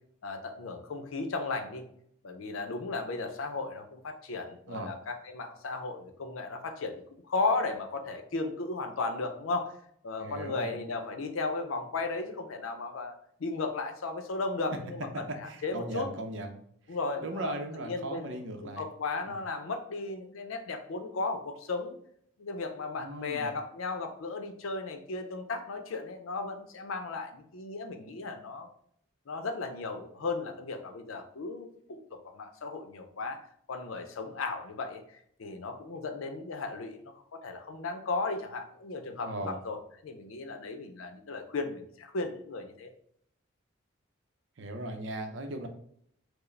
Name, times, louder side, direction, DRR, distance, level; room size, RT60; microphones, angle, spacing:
voice 1, 0.2-1.8 2.2-9.8 10.0-16.1 16.9-21.9 22.4-28.7 29.3-32.0 32.3-37.0 37.3-42.9, left 3 dB, 80° left, 6 dB, 0.6 m, -35 dB
voice 2, 10.2-10.8 15.3-16.6 17.2-18.9 19.3-19.4 23.0-23.5 39.2-39.5 44.6-45.7, right 1 dB, 60° right, 6 dB, 0.6 m, -38 dB
4.6 x 2.0 x 3.2 m, 0.66 s
head